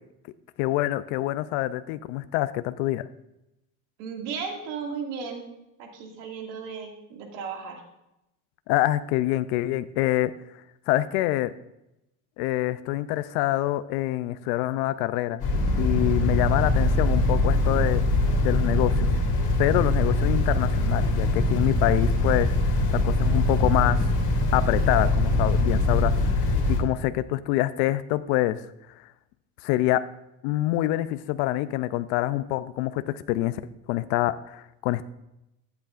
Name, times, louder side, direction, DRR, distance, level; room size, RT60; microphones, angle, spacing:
voice 1, 0.6-3.1 8.7-10.3 10.9-11.5 12.4-15.4 15.7-18.0 18.4-19.1 19.6-24.1 24.5-28.6 29.6-30.0 30.4-33.6 33.9-35.0, left 15 dB, 85° left, 14 dB, 0.5 m, -26 dB
voice 2, 4.0-5.4 5.8-7.8, right 6 dB, 90° right, 1 dB, 2.3 m, -35 dB
sound 1, 15.4-26.8, left 2 dB, 55° left, 2.8 m, -23 dB
14.5 x 8.2 x 2.5 m, 0.88 s
supercardioid pair, 105°, 45 cm